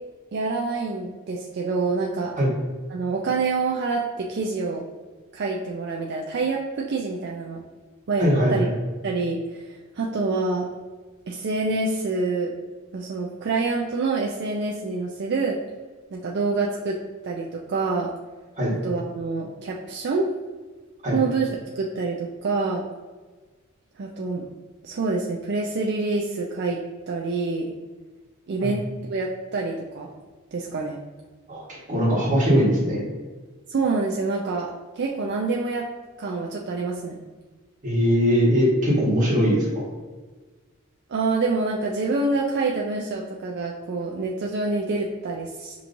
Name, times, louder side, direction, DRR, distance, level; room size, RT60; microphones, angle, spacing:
voice 1, 0.3-2.3 2.9-4.8 5.3-7.6 8.1-8.7 9.0-10.7 11.3-12.5 12.9-15.6 16.1-17.0 17.2-18.1 18.8-20.3 21.1-21.5 21.8-22.8 24.0-24.5 24.8-26.8 27.1-27.7 28.5-30.1 30.5-31.0 33.7-34.7 34.9-35.9 36.2-37.2 41.1-45.8, right 3 dB, 55° right, -2 dB, 0.4 m, -26 dB
voice 2, 8.2-8.7 18.6-18.7 21.0-21.2 28.6-28.7 31.5-33.0 37.8-39.7, equal, 40° right, -6 dB, 1.5 m, -21 dB
5.7 x 3.0 x 2.6 m, 1.4 s
head